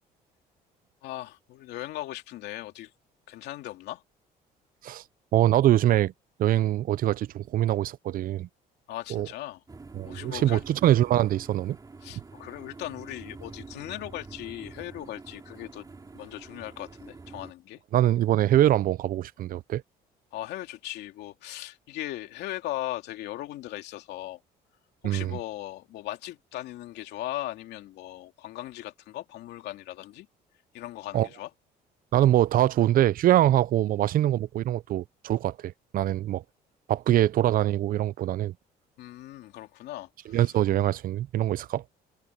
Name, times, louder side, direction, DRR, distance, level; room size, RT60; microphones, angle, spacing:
voice 1, 1.0-2.9 3.3-4.0 8.9-9.6 10.0-10.6 12.0-15.8 16.1-17.8 20.3-24.4 25.0-30.3 30.7-31.5 39.0-40.5, left 15 dB, 80° left, 2.9 m, -38 dB
voice 2, 5.3-6.1 6.4-8.5 9.1-9.3 10.0-11.8 17.9-19.8 25.0-25.4 31.1-31.3 32.1-36.4 36.9-38.5 40.3-41.8, right 13 dB, 55° right, 0.6 m, -23 dB
sound 1, 9.7-17.5, right 3 dB, 20° right, 4.4 m, -46 dB
cardioid pair, 110°, 17 cm